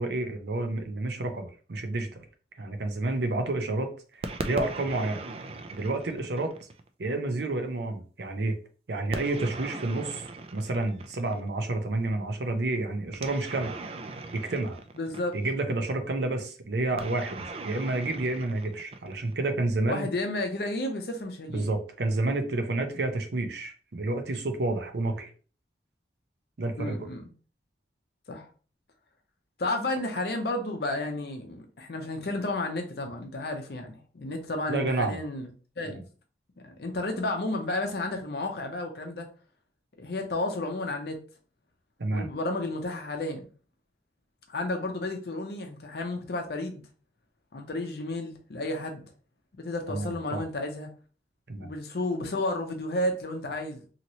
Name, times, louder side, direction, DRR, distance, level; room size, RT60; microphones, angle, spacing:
voice 1, 0.0-2.2 2.6-5.2 5.7-6.5 7.0-8.5 8.9-10.2 10.5-13.8 14.3-14.8 15.3-20.1 21.5-25.3 26.6-27.1 34.7-35.2 35.9-36.0 42.0-42.3 49.9-50.4 51.5-51.7, right 2 dB, 70° right, 0.6 m, -30 dB
sound 1, 4.2-6.9 9.1-11.5 13.1-15.6 17.0-19.4, right 3 dB, 35° right, 0.3 m, -39 dB
voice 2, 15.0-15.4 19.9-21.7 26.8-27.3 28.3-28.5 29.6-35.5 35.8-36.0 36.6-39.3 40.0-41.2 42.1-43.5 44.5-46.8 47.5-49.0 49.6-50.9 51.6-53.8, left 2 dB, 60° left, 0.6 m, -32 dB
3.0 x 2.8 x 2.7 m
head